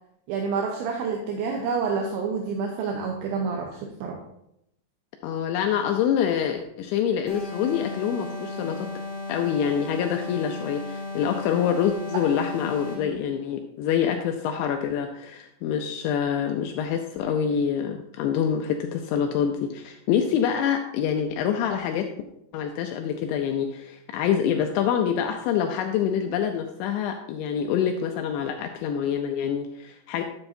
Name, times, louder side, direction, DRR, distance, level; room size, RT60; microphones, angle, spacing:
voice 1, 0.3-4.2, right 5 dB, 80° right, 1 dB, 2.9 m, -28 dB
voice 2, 5.2-8.9 9.3-22.1 22.5-30.2, left 8 dB, 85° left, 5 dB, 2.7 m, -26 dB
sound 1, 7.3-13.2, left 2 dB, 30° left, 1.8 m, -35 dB
11.5 x 7.7 x 2.7 m, 0.79 s
omnidirectional pair, 5.7 m